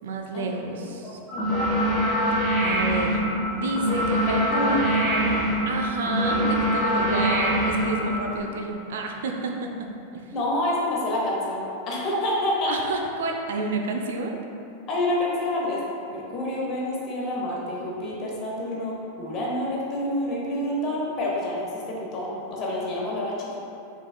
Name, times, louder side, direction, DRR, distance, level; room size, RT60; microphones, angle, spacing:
voice 1, 0.0-1.2 2.6-3.2 3.5-10.2 12.7-14.4, right 3 dB, 60° right, 2 dB, 0.5 m, -30 dB
voice 2, 1.0-1.8 4.3-4.9 7.1-7.2 10.3-12.7 14.9-15.8 16.1-23.6, left 1 dB, 35° left, -4 dB, 1.0 m, -28 dB
sound 1, 1.3-8.4, equal, 5° right, 1.4 m, -24 dB
5.7 x 3.9 x 2.2 m, 2.7 s
figure-of-eight pair, 90°, 0 cm